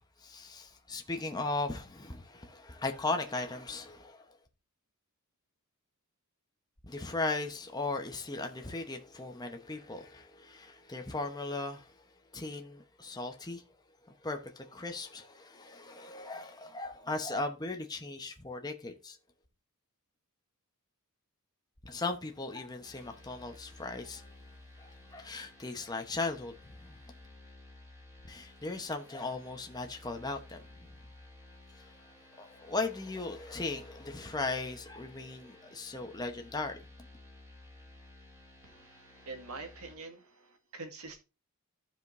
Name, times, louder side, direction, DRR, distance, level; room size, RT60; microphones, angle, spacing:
voice 1, 0.2-4.2 6.8-11.9 12.3-13.6 14.1-19.2 21.8-24.3 24.8-27.0 28.3-30.6 31.8-31.9 32.4-36.8, left 3 dB, 20° left, 0.9 m, -37 dB
sound 1, 22.8-39.9, left 1 dB, 10° right, 3.3 m, -55 dB
voice 2, 38.6-41.2, right 3 dB, 85° right, 1.8 m, -46 dB
14.5 x 5.1 x 2.6 m
head